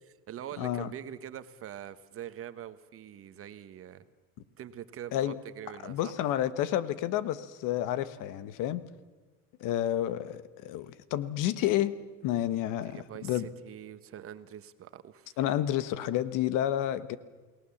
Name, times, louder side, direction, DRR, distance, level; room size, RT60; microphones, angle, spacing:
voice 1, 0.0-4.0 4.6-6.1 12.6-15.4, right 10 dB, 40° right, 12 dB, 1.2 m, -44 dB
voice 2, 0.6-0.9 5.1-5.3 5.8-8.8 9.6-12.0 12.2-13.5 15.4-17.2, left 12 dB, 60° left, 15 dB, 1.3 m, -30 dB
28.5 x 19.0 x 7.2 m, 1.3 s
cardioid pair, 130°, 35 cm